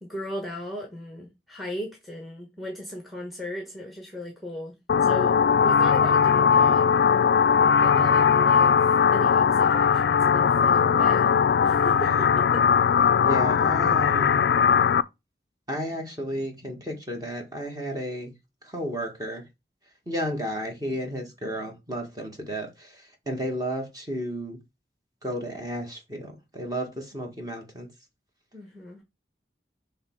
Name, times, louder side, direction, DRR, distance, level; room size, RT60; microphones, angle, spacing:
voice 1, 0.0-6.8 7.8-11.3 11.6-12.6 28.5-29.0, equal, ahead, 1.1 m, -37 dB
sound 1, 4.9-15.0, left 7 dB, 70° left, 0.3 m, -20 dB
voice 2, 7.9-8.4 11.9-12.2 13.2-14.5 15.7-18.3 18.7-19.4 20.1-23.0 23.2-24.6 25.2-27.9, equal, 20° right, 1.7 m, -33 dB
6.5 x 3.5 x 4.7 m
head